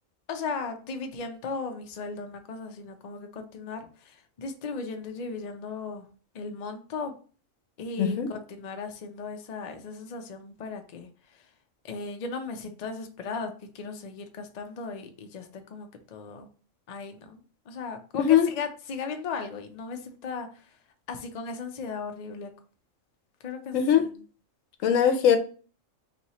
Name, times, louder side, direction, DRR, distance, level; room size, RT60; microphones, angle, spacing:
voice 1, 0.3-6.1 6.3-7.1 7.8-11.5 11.8-16.5 16.9-20.8 21.1-22.5 23.4-24.1, left 4 dB, 50° left, 0.5 m, -37 dB
voice 2, 8.0-8.3 18.2-18.5 23.7-24.0 24.8-25.4, left 9 dB, 75° left, 1.0 m, -20 dB
3.2 x 2.9 x 4.1 m
omnidirectional pair, 1.4 m